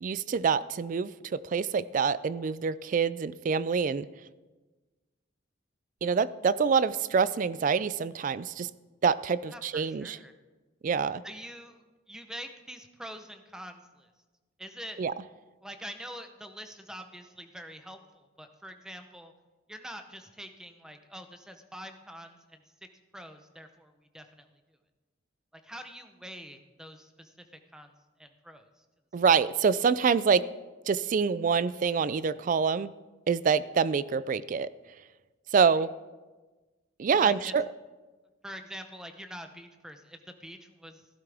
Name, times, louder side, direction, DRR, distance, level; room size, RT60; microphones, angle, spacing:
voice 1, 0.0-4.1 6.0-8.7 9.0-10.2 10.8-11.2 15.0-15.1 29.1-30.4 30.9-32.9 33.3-34.7 35.5-35.9 37.0-37.6, right 6 dB, 45° right, 17 dB, 0.3 m, -26 dB
voice 2, 9.5-10.4 11.2-14.1 14.6-15.0 15.6-19.3 19.7-22.9 23.1-24.5 25.5-27.9 28.2-28.8 33.8-33.9 35.7-35.9 37.1-37.5 38.4-41.1, equal, 5° right, 7 dB, 0.7 m, -45 dB
14.5 x 12.5 x 3.5 m, 1.3 s
head